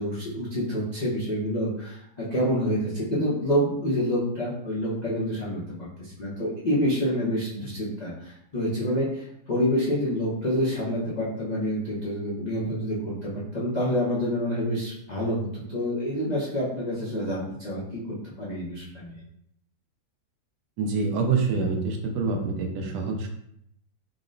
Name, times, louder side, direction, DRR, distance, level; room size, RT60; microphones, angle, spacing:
voice 1, 0.0-5.6 6.0-19.2, equal, 65° left, -9 dB, 0.4 m, -27 dB
voice 2, 20.8-23.3, right 4 dB, 70° right, 3 dB, 1.1 m, -26 dB
3.8 x 2.1 x 3.7 m, 0.73 s
omnidirectional pair, 2.0 m